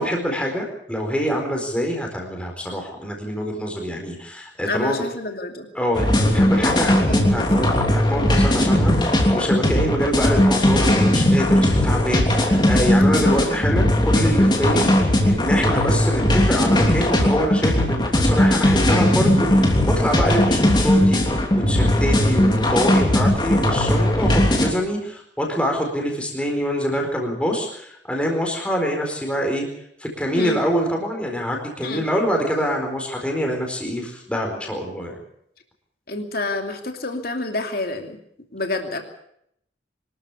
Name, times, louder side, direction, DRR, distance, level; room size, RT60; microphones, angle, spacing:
voice 1, 0.0-5.0 5.7-29.7 30.0-35.2, equal, 5° left, 1 dB, 4.4 m, -25 dB
voice 2, 4.7-5.7 6.9-7.0 7.3-7.7 13.3-13.4 30.3-30.6 31.8-32.0 36.1-38.2 38.5-39.0, left 2 dB, 50° left, 4 dB, 2.7 m, -28 dB
sound 1, 5.9-24.7, left 1 dB, 25° left, 3.2 m, -18 dB
24.5 x 13.5 x 8.4 m, 0.73 s
head